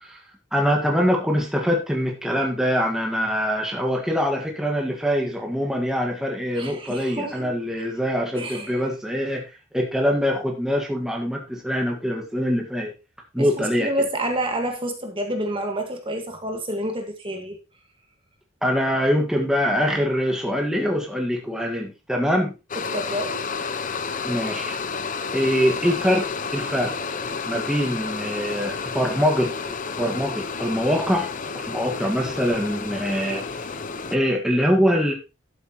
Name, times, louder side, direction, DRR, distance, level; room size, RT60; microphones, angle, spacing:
voice 1, 0.5-9.5 9.7-12.9 13.3-13.9 18.6-22.5 24.2-24.8 25.3-26.9 27.5-33.7 34.1-35.1, equal, 5° right, 0 dB, 1.7 m, -24 dB
voice 2, 6.6-7.6 8.3-8.8 13.4-17.6 22.9-23.4, right 1 dB, 25° right, 4 dB, 1.7 m, -28 dB
sound 1, 22.7-34.2, left 5 dB, 40° left, 0.7 m, -31 dB
12.0 x 8.1 x 3.1 m, 0.28 s
head